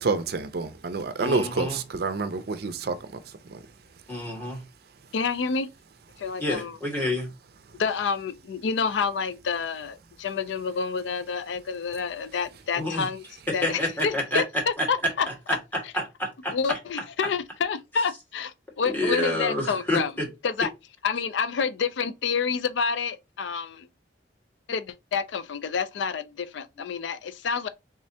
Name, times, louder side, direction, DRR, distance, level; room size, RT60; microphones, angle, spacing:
voice 1, 0.0-5.1 6.1-6.2 7.6-7.8, right 4 dB, 60° right, 0.5 m, -30 dB
voice 2, 1.2-1.7 4.1-4.6 6.4-7.3 12.8-13.1 13.5-14.4 15.9-16.8 18.8-20.0, left 1 dB, 10° left, 1.6 m, -28 dB
voice 3, 5.1-5.7 6.2-6.8 7.8-13.2 13.5-15.3 15.8-15.9 16.5-20.1 20.4-20.7 21.0-23.9 24.7-27.7, left 5 dB, 90° left, 0.4 m, -28 dB
3.6 x 3.2 x 2.7 m
head